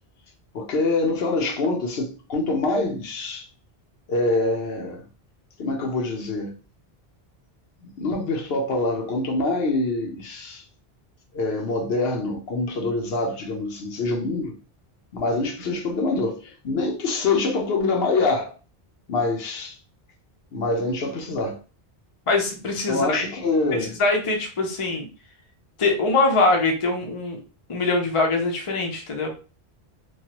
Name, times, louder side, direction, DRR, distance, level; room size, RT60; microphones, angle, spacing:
voice 1, 0.5-3.5 4.1-5.0 5.6-6.5 7.8-10.6 11.3-14.5 15.1-18.5 19.1-19.8 20.5-21.6 22.9-24.0, left 3 dB, 75° left, 1.0 m, -25 dB
voice 2, 22.3-23.2 24.0-25.1 25.8-27.4 27.7-29.3, left 3 dB, 35° left, 0.6 m, -22 dB
3.1 x 2.3 x 2.8 m
omnidirectional pair, 1.0 m